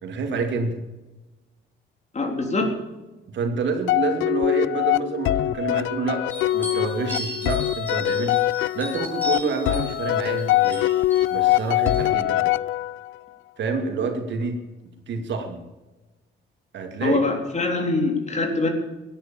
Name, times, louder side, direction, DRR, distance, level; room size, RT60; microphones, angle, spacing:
voice 1, 0.0-0.8 3.3-8.4 8.7-12.5 13.6-14.6 15.1-15.6 16.7-17.2, right 4 dB, 65° right, 5 dB, 2.6 m, -28 dB
voice 2, 2.1-2.7 17.0-18.7, left 3 dB, 35° left, 3 dB, 3.8 m, -23 dB
sound 1, 3.9-13.2, left 15 dB, 80° left, 0.5 m, -23 dB
sound 2, 6.3-12.1, equal, 10° left, 5.4 m, -37 dB
17.0 x 10.5 x 7.1 m, 1.1 s
cardioid pair, 90°, 20 cm